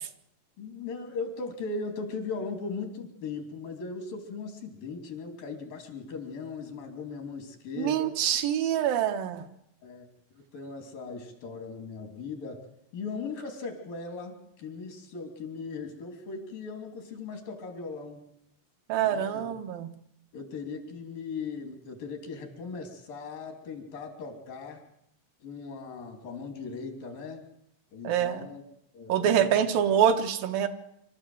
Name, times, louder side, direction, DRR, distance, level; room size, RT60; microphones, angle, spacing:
voice 1, 0.6-8.2 9.8-10.1 10.3-12.7 12.9-18.3 19.0-19.4 20.3-24.8 25.4-27.5 27.9-28.6 28.9-29.7, left 4 dB, 85° left, 4 dB, 4.6 m, -38 dB
voice 2, 7.8-9.4 18.9-19.9 28.0-28.5 29.1-30.7, right 9 dB, 90° right, 6 dB, 3.0 m, -25 dB
25.5 x 13.0 x 7.8 m, 0.79 s
omnidirectional pair, 3.9 m